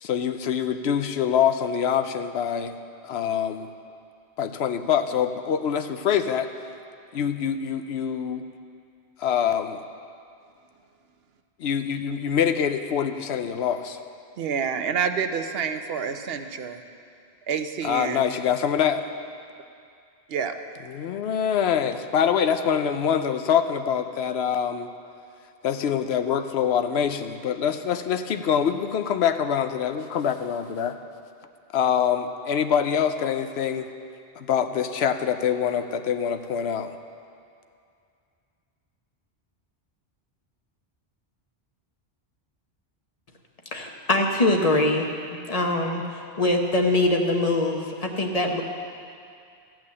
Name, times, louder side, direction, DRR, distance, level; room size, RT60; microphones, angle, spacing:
voice 1, 0.0-2.7 3.0-3.7 4.4-6.5 7.1-8.4 9.2-9.8 11.6-14.0 17.8-19.0 20.9-24.9 25.6-31.0 31.7-33.9 34.4-36.9, left 8 dB, 90° left, 9 dB, 0.9 m, -25 dB
voice 2, 14.4-16.8 17.5-18.3 20.3-20.5, right 6 dB, 70° right, 8 dB, 0.9 m, -28 dB
voice 3, 43.7-45.1 45.5-46.0 46.4-48.6, left 2 dB, 40° left, 2 dB, 1.0 m, -23 dB
14.0 x 6.2 x 8.5 m, 2.4 s
omnidirectional pair, 1.1 m